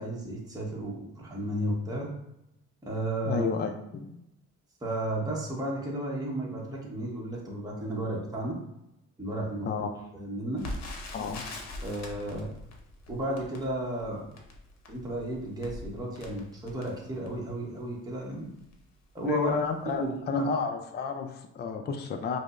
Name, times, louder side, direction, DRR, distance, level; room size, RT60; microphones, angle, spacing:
voice 1, 0.0-2.1 2.8-3.5 4.8-8.6 9.2-9.9 10.1-10.6 11.8-12.5 13.1-14.3 14.9-18.5 19.1-19.5 20.0-20.5, right 1 dB, 10° right, -3 dB, 0.9 m, -33 dB
voice 2, 3.2-4.1 9.6-9.9 11.1-11.4 19.2-22.4, left 5 dB, 35° left, 4 dB, 0.4 m, -31 dB
Crackle, 10.6-17.5 18.2-18.3 18.6-18.8 19.4-19.6 19.9-20.0, left 2 dB, 60° left, 0.8 m, -42 dB
4.9 x 2.1 x 2.4 m, 0.84 s
cardioid pair, 90°, 30 cm